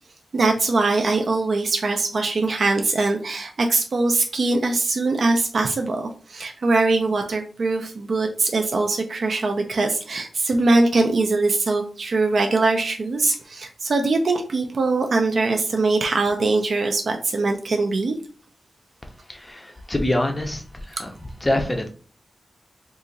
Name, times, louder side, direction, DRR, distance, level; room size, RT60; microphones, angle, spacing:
voice 1, 0.3-18.2, right 3 dB, 55° right, 4 dB, 0.4 m, -22 dB
voice 2, 19.3-21.1 21.4-21.9, left 1 dB, 15° left, 4 dB, 0.5 m, -25 dB
2.8 x 2.5 x 3.9 m, 0.40 s
wide cardioid pair, 155°, 0 cm